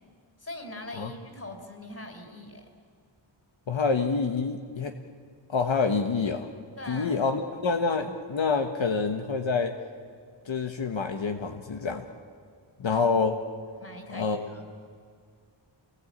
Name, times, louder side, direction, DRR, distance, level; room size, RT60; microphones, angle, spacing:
voice 1, 0.4-2.7 6.8-7.2 12.9-13.0 13.8-14.7, left 1 dB, 30° left, 5 dB, 4.3 m, -42 dB
voice 2, 3.7-4.9 5.5-6.5 6.9-9.7 10.4-12.0 12.8-13.3 14.1-14.5, left 4 dB, 75° left, 5 dB, 1.4 m, -27 dB
28.0 x 19.5 x 8.8 m, 2.1 s
wide cardioid pair, 80°, 46 cm